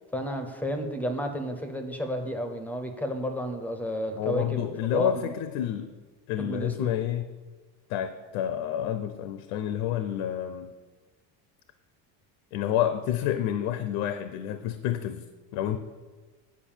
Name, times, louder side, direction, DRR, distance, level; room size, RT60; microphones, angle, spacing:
voice 1, 0.1-4.7 4.9-5.3 6.4-6.9, equal, 5° left, 6 dB, 0.4 m, -31 dB
voice 2, 4.2-5.9 6.3-7.3 7.9-10.7 12.5-15.8, left 11 dB, 70° left, 10 dB, 0.7 m, -29 dB
8.6 x 5.3 x 7.2 m, 1.4 s
cardioid pair, 170°, 41 cm